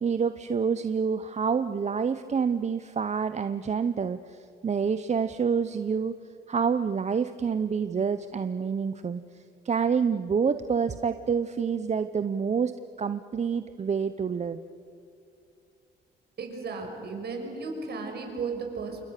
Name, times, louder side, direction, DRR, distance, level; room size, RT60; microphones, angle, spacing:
voice 1, 0.0-6.1 6.5-9.2 9.6-12.7 13.0-14.6, right 6 dB, 35° right, 11 dB, 0.8 m, -27 dB
voice 2, 16.4-19.0, right 4 dB, 55° right, 3 dB, 6.1 m, -34 dB
28.5 x 25.0 x 6.8 m, 2.6 s
cardioid pair, 90°, 20 cm